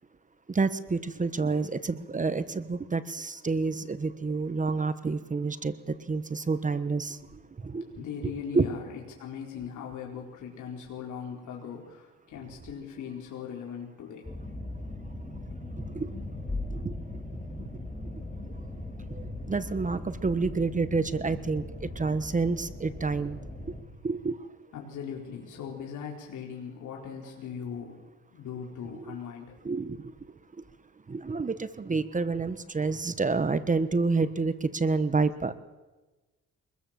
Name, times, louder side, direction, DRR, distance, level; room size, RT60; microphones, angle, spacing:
voice 1, 0.5-5.7 6.1-7.2 7.7-7.8 8.2-8.7 15.9-16.1 16.8-16.9 19.5-23.4 24.0-24.4 29.1-29.2 29.6-30.0 31.1-35.5, right 4 dB, 25° right, 13 dB, 1.3 m, -28 dB
voice 2, 8.0-14.3 24.7-28.0 28.3-29.6, left 7 dB, 75° left, -1 dB, 4.4 m, -39 dB
sound 1, 14.2-23.8, left 2 dB, 15° left, 6.7 m, -39 dB
24.5 x 21.5 x 7.6 m, 1.2 s
cardioid pair, 90°, 30 cm